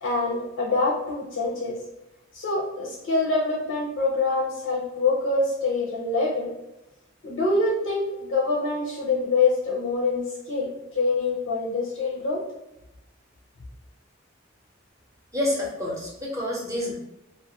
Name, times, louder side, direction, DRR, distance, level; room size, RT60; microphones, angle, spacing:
voice 1, 0.0-1.8 2.3-6.5 7.2-10.7 11.0-12.4, left 3 dB, 90° left, -3 dB, 0.6 m, -25 dB
voice 2, 15.3-16.9, left 1 dB, 15° right, -4 dB, 0.7 m, -28 dB
2.4 x 2.4 x 2.7 m, 0.92 s
head